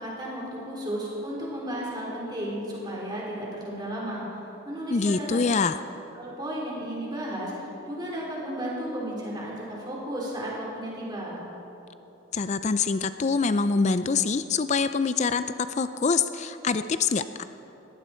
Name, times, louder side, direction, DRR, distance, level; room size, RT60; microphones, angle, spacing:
voice 1, 0.0-4.2 4.7-5.3 6.1-11.4, right 1 dB, 20° right, -4 dB, 3.9 m, -34 dB
voice 2, 4.9-5.8 12.3-17.4, left 4 dB, 35° left, 11 dB, 0.4 m, -25 dB
20.0 x 15.5 x 4.4 m, 3.0 s
head